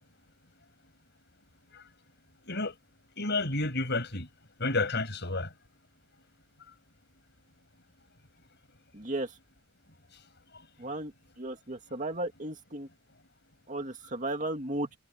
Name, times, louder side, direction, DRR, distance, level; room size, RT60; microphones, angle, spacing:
voice 1, 2.5-2.8 3.2-4.3 4.6-5.5 10.1-10.2 10.5-10.6, left 2 dB, 50° left, 6.4 m, -31 dB
voice 2, 8.9-9.4 10.8-11.1 11.4-12.9 13.7-14.9, right 1 dB, 35° right, 2.1 m, -35 dB
head